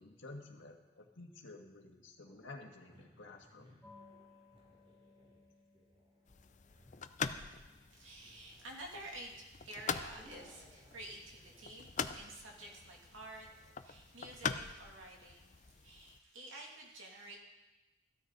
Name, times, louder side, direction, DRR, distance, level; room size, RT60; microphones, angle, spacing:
voice 1, 0.0-3.8, left 2 dB, 70° left, 2 dB, 1.7 m, -52 dB
sound 1, 2.2-14.9, equal, 30° right, 2.9 m, -65 dB
sound 2, 3.8-10.0, left 3 dB, ahead, 3.4 m, -65 dB
sound 3, 6.3-16.2, left 6 dB, 40° left, 0.5 m, -44 dB
voice 2, 7.9-17.4, right 1 dB, 85° right, -1 dB, 2.7 m, -50 dB
15.5 x 13.0 x 4.1 m, 1.1 s
head